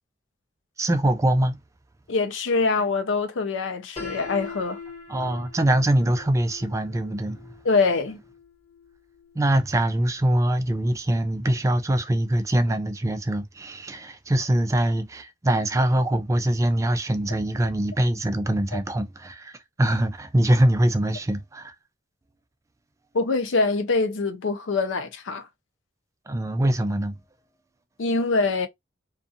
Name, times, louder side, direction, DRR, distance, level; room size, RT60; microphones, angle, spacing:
voice 1, 0.8-1.6 5.1-7.5 9.4-21.7 26.3-27.2, right 1 dB, 15° right, 0.3 m, -23 dB
voice 2, 2.1-4.8 7.6-8.2 18.7-18.8 23.1-25.5 28.0-28.7, left 3 dB, 80° left, 0.5 m, -24 dB
Piano, 4.0-9.8, left 4 dB, 30° left, 1.5 m, -42 dB
2.6 x 2.4 x 2.6 m
head